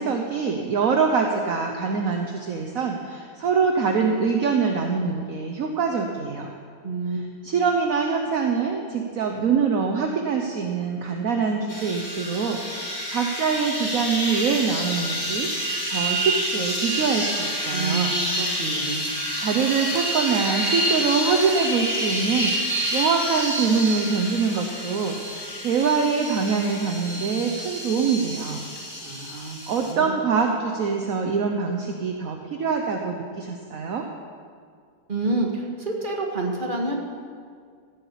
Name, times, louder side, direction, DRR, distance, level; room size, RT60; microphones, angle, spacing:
voice 1, 0.0-6.5 7.4-18.2 19.4-28.6 29.2-34.0, right 5 dB, 55° right, 3 dB, 1.3 m, -24 dB
voice 2, 6.8-7.5 17.7-19.0 29.0-29.6 29.9-30.2 35.1-37.0, right 2 dB, 30° right, 0 dB, 1.9 m, -28 dB
sound 1, 11.7-29.9, equal, 20° left, 2.7 m, -28 dB
15.0 x 8.1 x 8.5 m, 2.1 s
omnidirectional pair, 1.9 m